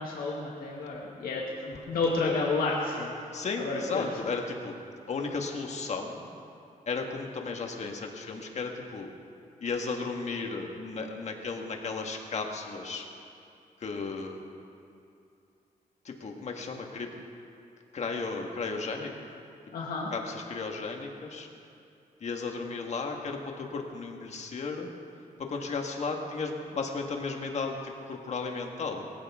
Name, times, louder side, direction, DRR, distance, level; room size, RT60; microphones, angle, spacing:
voice 1, 0.0-3.1 3.6-4.1 19.7-20.1, left 3 dB, 85° left, -4 dB, 2.0 m, -30 dB
voice 2, 3.3-4.7 5.1-6.2 6.9-9.1 9.6-13.1 13.8-14.4 16.1-17.1 17.9-19.4 20.1-21.5 22.2-24.9 25.4-29.1, left 4 dB, 50° left, 2 dB, 1.7 m, -34 dB
21.5 x 15.0 x 3.7 m, 2.6 s
wide cardioid pair, 140°, 15 cm